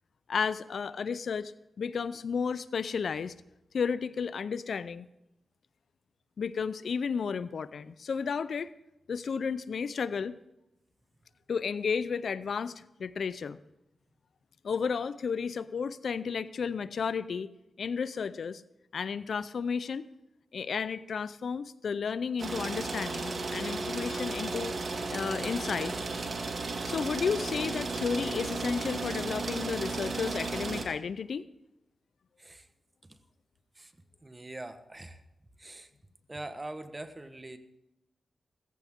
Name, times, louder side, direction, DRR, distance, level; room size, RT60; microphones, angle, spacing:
voice 1, 0.3-1.5 1.8-3.3 3.7-5.1 6.4-8.7 9.1-10.3 11.5-13.6 14.6-17.5 17.8-18.6 18.9-20.1 20.5-24.7 25.1-25.9 26.8-31.5, left 6 dB, 75° left, 16 dB, 0.5 m, -32 dB
sound 1, 22.4-30.8, right 3 dB, 60° right, 2.0 m, -34 dB
voice 2, 34.2-35.2 35.6-35.9 36.3-37.6, right 2 dB, 25° right, 10 dB, 1.2 m, -43 dB
16.0 x 14.5 x 3.7 m, 0.91 s
cardioid pair, 60°, 0 cm